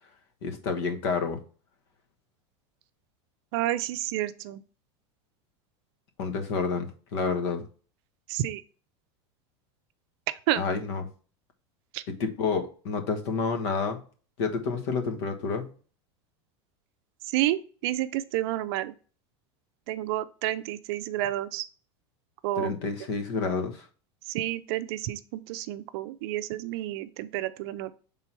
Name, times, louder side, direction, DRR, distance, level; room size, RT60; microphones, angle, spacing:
voice 1, 0.4-1.4 6.2-7.7 10.6-11.1 12.1-14.0 14.4-15.7 22.5-23.9, left 5 dB, 70° left, 5 dB, 1.3 m, -29 dB
voice 2, 3.5-4.6 8.3-8.6 10.5-10.6 11.9-12.0 17.3-18.9 19.9-21.7 22.4-22.7 24.3-27.9, right 14 dB, 60° right, 13 dB, 0.5 m, -30 dB
5.6 x 3.8 x 4.6 m, 0.39 s
supercardioid pair, 145°, 15 cm